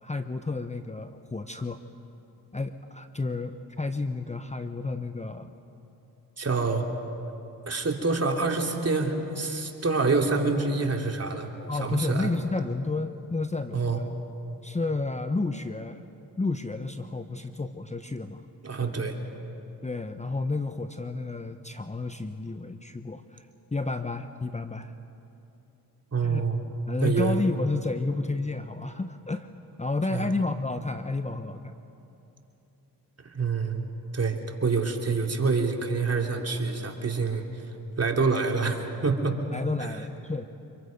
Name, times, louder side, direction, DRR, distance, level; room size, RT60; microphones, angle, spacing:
voice 1, 0.0-1.8 2.5-5.5 11.7-14.1 14.6-16.0 16.4-18.5 18.8-19.1 19.8-23.5 23.7-24.9 26.2-26.4 26.9-29.5 29.8-31.7 39.5-40.5, left 3 dB, 15° left, 8 dB, 0.9 m, -31 dB
voice 2, 6.4-6.8 7.7-12.3 13.7-14.0 18.6-19.2 26.1-26.6 27.0-27.4 30.1-30.3 33.2-33.9 34.1-37.7 38.0-39.4 39.8-40.0, right 4 dB, 35° right, 2 dB, 3.1 m, -27 dB
26.0 x 23.0 x 5.3 m, 2.9 s
supercardioid pair, 50°, 42 cm